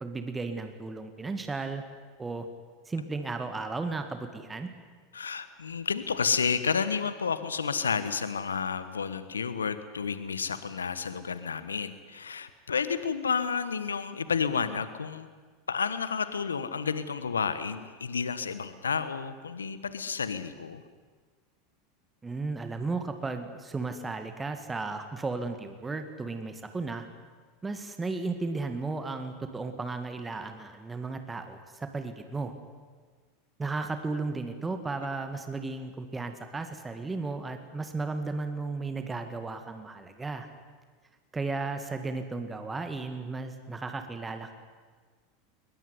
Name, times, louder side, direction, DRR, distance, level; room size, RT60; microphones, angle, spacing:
voice 1, 0.0-1.8 2.2-2.5 2.9-4.7 22.2-27.0 27.6-32.5 33.6-40.5 41.3-44.5, right 3 dB, 15° right, 7 dB, 2.1 m, -34 dB
voice 2, 5.1-15.3 15.7-20.8, left 6 dB, 85° left, 13 dB, 1.3 m, -31 dB
21.5 x 20.5 x 9.7 m, 1.5 s
figure-of-eight pair, 85°, 0 cm